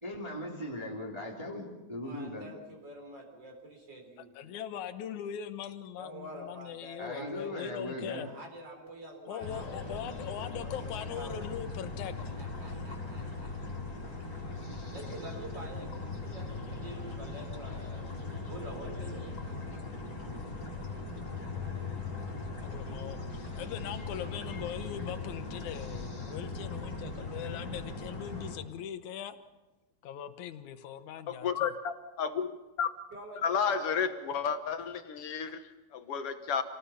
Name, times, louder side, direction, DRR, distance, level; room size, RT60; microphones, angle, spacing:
voice 1, 0.0-2.5 7.0-8.3, left 1 dB, 10° right, -3 dB, 2.6 m, -38 dB
voice 2, 2.0-4.3 6.0-7.5 8.2-11.4 12.4-13.5 14.9-19.2 33.1-34.5, right 1 dB, 35° right, 2 dB, 4.7 m, -47 dB
voice 3, 4.2-8.3 9.3-12.1 12.7-13.0 22.6-29.4 30.0-31.7, left 9 dB, 85° left, 10 dB, 2.4 m, -41 dB
sound 1, 9.4-28.6, left 3 dB, 30° left, 5.0 m, -39 dB
voice 4, 31.3-32.5 32.8-32.9 33.4-35.6 35.9-36.6, left 7 dB, 60° left, 8 dB, 1.9 m, -31 dB
27.0 x 19.0 x 5.7 m, 1.1 s
omnidirectional pair, 3.3 m